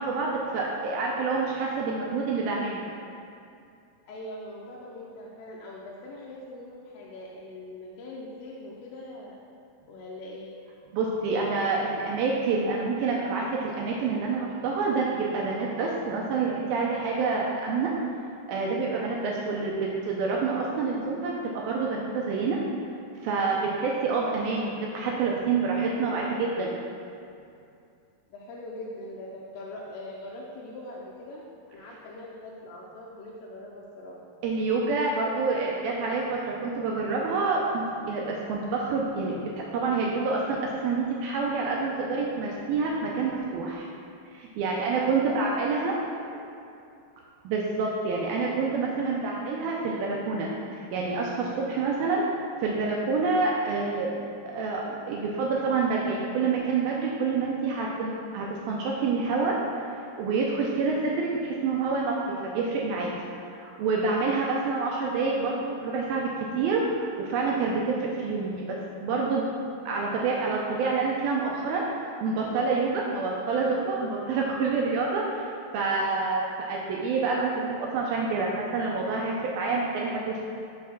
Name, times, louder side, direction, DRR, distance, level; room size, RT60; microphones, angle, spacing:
voice 1, 0.0-2.8 10.9-17.9 18.5-22.6 23.2-26.7 34.4-43.9 44.3-46.0 47.4-52.2 52.6-59.6 60.2-62.2 62.4-63.1 63.5-69.5 69.9-71.8 72.2-75.5 75.7-80.4, right 4 dB, 80° right, -2 dB, 2.2 m, -27 dB
voice 2, 4.1-9.4 9.9-10.5 26.1-26.6 28.3-34.2 45.1-45.4 46.0-46.5, left 1 dB, 80° left, -4 dB, 2.2 m, -42 dB
6.1 x 4.4 x 5.7 m, 2.5 s
omnidirectional pair, 4.6 m